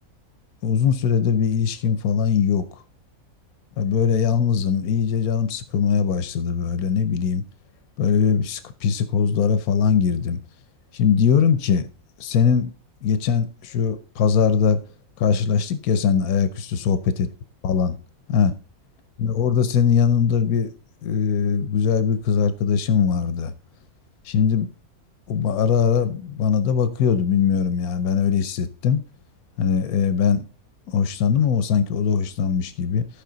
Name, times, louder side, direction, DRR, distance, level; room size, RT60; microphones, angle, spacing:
voice 1, 0.6-2.7 3.8-7.4 8.0-10.4 10.9-11.9 12.2-12.7 13.0-14.8 15.2-17.3 17.6-18.0 18.3-18.5 19.2-20.7 21.0-23.5 24.2-24.7 25.3-29.0 29.6-30.4 30.9-33.1, left 7 dB, 90° left, 1.2 m, -21 dB
14.0 x 4.9 x 3.9 m
omnidirectional pair, 1.5 m